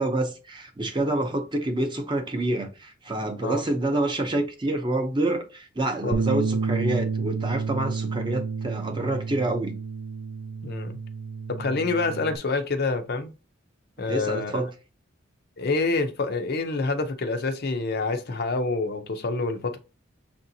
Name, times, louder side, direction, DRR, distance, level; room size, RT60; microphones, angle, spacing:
voice 1, 0.0-9.7 14.1-14.7, right 1 dB, 20° right, 0.6 m, -27 dB
Bass guitar, 6.1-12.4, right 5 dB, 65° right, 0.4 m, -30 dB
voice 2, 10.6-11.0 11.5-13.3 14.0-14.6 15.6-19.8, left 3 dB, 50° left, 0.5 m, -27 dB
6.5 x 2.6 x 2.7 m
head